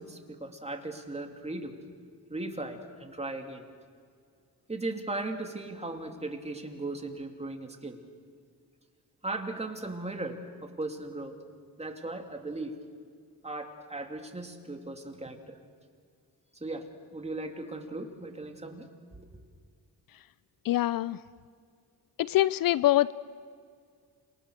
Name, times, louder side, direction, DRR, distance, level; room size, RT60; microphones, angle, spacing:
voice 1, 0.0-1.7 2.3-3.6 4.7-8.0 9.2-10.4 10.6-11.3 11.8-12.8 13.4-15.6 16.6-16.9 17.1-18.9 19.1-19.3, right 2 dB, 15° right, 4 dB, 3.0 m, -37 dB
voice 2, 20.6-21.2 22.2-23.1, left 14 dB, 65° left, 19 dB, 0.5 m, -24 dB
28.0 x 23.0 x 6.6 m, 2.1 s
cardioid pair, 85°, 38 cm